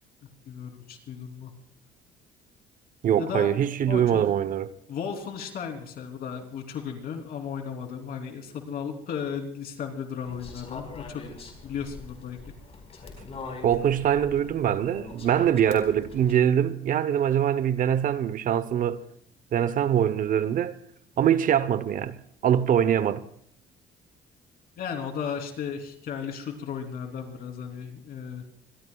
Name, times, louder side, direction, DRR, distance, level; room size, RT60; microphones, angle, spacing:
voice 1, 0.5-1.5 3.2-3.5 3.9-4.2 4.9-11.2 11.6-12.4 24.8-28.4, left 7 dB, 60° left, 3.3 m, -35 dB
voice 2, 3.0-4.7 13.6-19.0 19.5-20.7 21.2-22.2 22.4-23.2, right 9 dB, 55° right, 0.9 m, -23 dB
sound 1, 10.3-16.3, left 3 dB, 40° left, 4.5 m, -43 dB
26.0 x 22.0 x 2.3 m
cardioid pair, 110°, 17 cm